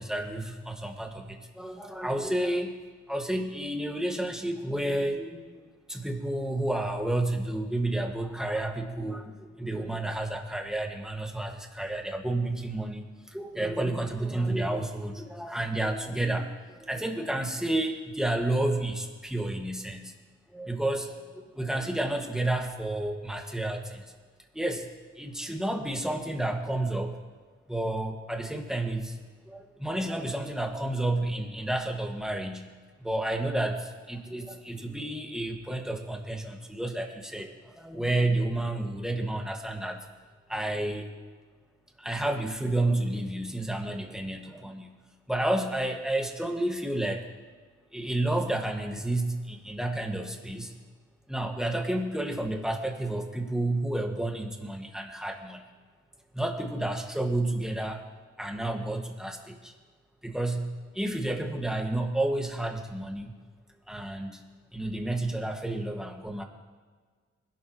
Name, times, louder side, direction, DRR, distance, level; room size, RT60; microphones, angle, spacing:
voice 1, 0.0-2.8 3.1-20.1 20.5-24.0 24.5-24.9 25.2-27.2 27.7-29.2 29.5-32.7 33.0-40.0 40.5-41.1 42.0-44.9 45.3-47.2 47.9-50.7 51.3-55.6 56.3-58.0 58.4-59.7 60.2-63.3 63.9-64.4 64.7-66.4, right 1 dB, ahead, 2 dB, 1.8 m, -31 dB
21.0 x 12.0 x 3.1 m, 1.5 s
cardioid pair, 70°, 29 cm